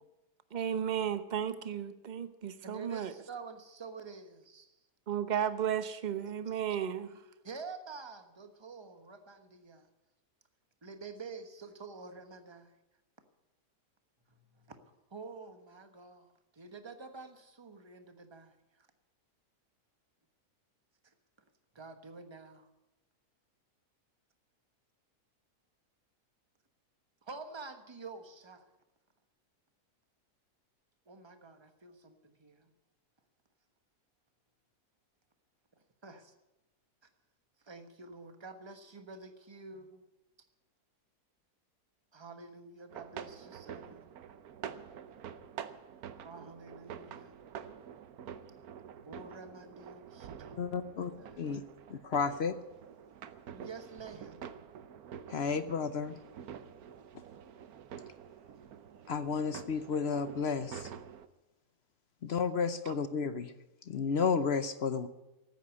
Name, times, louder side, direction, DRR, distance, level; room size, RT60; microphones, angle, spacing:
voice 1, 0.5-3.1 5.1-7.1 62.8-63.0, right 9 dB, 35° right, 11 dB, 0.8 m, -34 dB
voice 2, 2.6-4.8 7.4-9.9 10.8-12.7 14.3-14.8 15.1-18.9 21.0-21.1 21.7-22.7 27.2-28.6 31.1-32.7 36.0-36.3 37.6-40.0 42.1-44.1 46.1-47.3 49.0-50.7 51.2-51.4 53.5-54.4, right 4 dB, 20° right, 7 dB, 1.1 m, -48 dB
sound 1, 42.9-61.3, right 8 dB, 70° right, 1.2 m, -48 dB
voice 3, 50.6-51.1 51.4-51.6 51.9-52.5 55.3-56.2 59.1-60.9 62.2-63.5 63.9-65.1, left 5 dB, 55° left, 12 dB, 0.8 m, -32 dB
14.5 x 9.2 x 9.6 m, 0.98 s
omnidirectional pair, 1.7 m